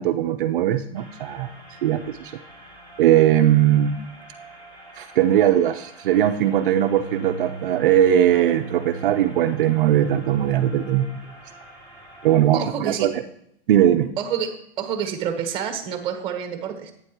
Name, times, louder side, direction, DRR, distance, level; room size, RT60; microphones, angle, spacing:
voice 1, 0.0-1.5 1.8-2.3 3.0-4.0 5.0-11.1 12.2-13.2 13.7-14.1, right 11 dB, 55° right, 6 dB, 0.6 m, -19 dB
sound 1, 0.9-12.4, right 1 dB, 15° left, 1.9 m, -46 dB
Bowed string instrument, 6.1-11.2, right 4 dB, 85° left, 4.2 m, -37 dB
voice 2, 12.5-13.1 14.2-14.5 14.8-16.9, right 8 dB, 15° right, 6 dB, 1.1 m, -28 dB
11.5 x 9.0 x 2.9 m, 0.74 s
hypercardioid pair, 160°, 31 cm